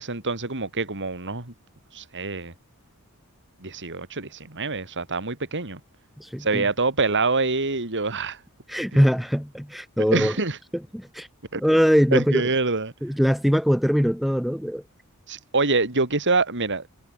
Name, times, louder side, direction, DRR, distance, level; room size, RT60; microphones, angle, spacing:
voice 1, 0.0-1.5 1.9-2.5 3.6-5.8 6.4-8.4 8.9-9.0 10.0-10.6 11.5-11.6 12.1-12.9 15.3-16.9, right 3 dB, 55° right, 3.9 m, -25 dB
voice 2, 6.2-6.6 8.7-10.3 10.9-11.3 11.6-12.4 13.0-14.8, equal, ahead, 1.0 m, -21 dB
head